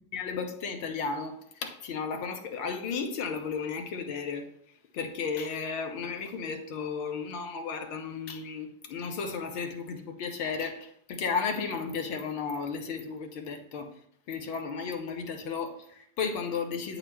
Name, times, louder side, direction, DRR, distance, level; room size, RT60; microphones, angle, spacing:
voice 1, 0.1-4.4 4.9-13.9 14.3-17.0, left 5 dB, 45° left, 1.0 m, -34 dB
8.4 x 3.0 x 5.7 m
figure-of-eight pair, 90°, 0 cm